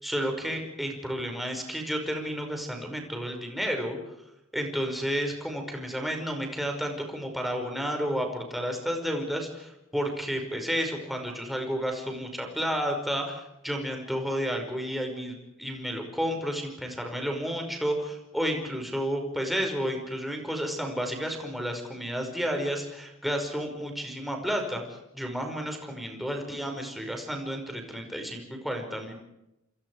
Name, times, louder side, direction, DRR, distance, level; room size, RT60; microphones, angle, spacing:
voice 1, 0.0-4.0 4.5-24.8 25.1-29.2, equal, ahead, 2 dB, 5.4 m, -31 dB
27.5 x 27.0 x 4.9 m, 0.87 s
head